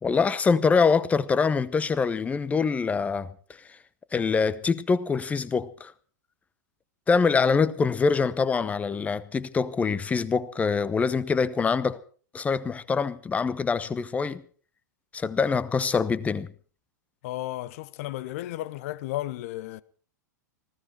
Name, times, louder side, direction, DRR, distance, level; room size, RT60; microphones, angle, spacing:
voice 1, 0.0-3.3 4.1-5.9 7.1-12.0 12.3-14.4 15.1-16.5, left 5 dB, 15° left, 0.9 m, -24 dB
voice 2, 17.2-19.8, left 15 dB, 50° left, 0.8 m, -33 dB
19.5 x 16.0 x 4.6 m
figure-of-eight pair, 100°, 10 cm